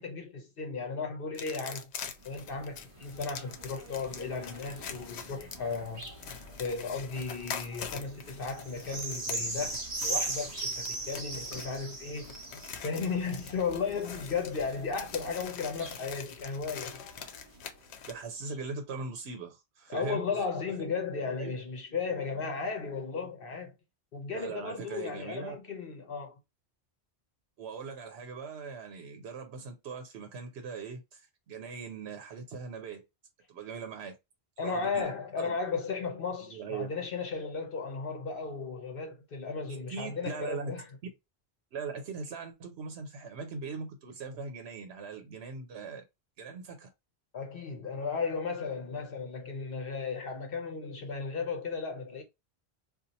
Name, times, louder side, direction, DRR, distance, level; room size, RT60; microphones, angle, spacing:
voice 1, 0.0-1.9 2.2-6.1 6.6-9.8 10.0-12.4 12.8-17.0 19.9-23.7 24.1-26.4 34.6-40.8 47.3-52.2, left 5 dB, 60° left, 0.9 m, -35 dB
sound 1, 1.3-18.1, left 7 dB, 90° left, 0.9 m, -44 dB
sound 2, 2.0-17.8 18.5-18.6, right 2 dB, 30° right, 1.0 m, -41 dB
voice 2, 18.1-20.3 21.4-21.5 24.3-25.6 27.6-33.1 33.5-34.2 34.6-35.0 35.4-35.6 36.4-36.9 39.9-40.7 41.7-46.0 46.4-46.9, right 5 dB, 80° right, 1.0 m, -40 dB
2.8 x 2.5 x 3.9 m
omnidirectional pair, 1.1 m